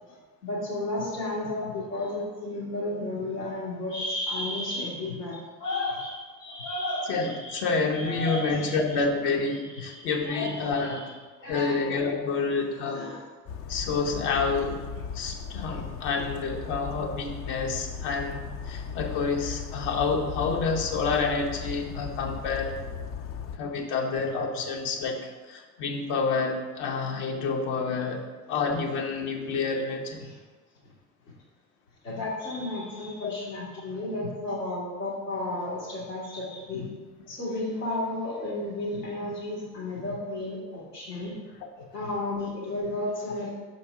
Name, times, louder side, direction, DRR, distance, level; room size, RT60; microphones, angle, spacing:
voice 1, 0.4-7.6 7.9-9.0 9.9-11.1 11.4-11.8 12.3-12.4 12.9-13.2 21.9-22.0 30.2-30.3 32.0-36.9 37.3-41.4 41.9-43.5, left 2 dB, 85° left, -6 dB, 1.9 m, -33 dB
voice 2, 7.1-11.0 11.5-13.1 13.7-14.9 15.1-22.7 23.5-30.3 33.2-33.3 34.0-34.1, left 4 dB, 65° left, 2 dB, 1.1 m, -28 dB
Bird vocalization bird call bird song, 13.5-23.6, left 7 dB, 30° left, 0.4 m, -37 dB
5.5 x 4.4 x 4.8 m, 1.3 s
hypercardioid pair, 60°, 47 cm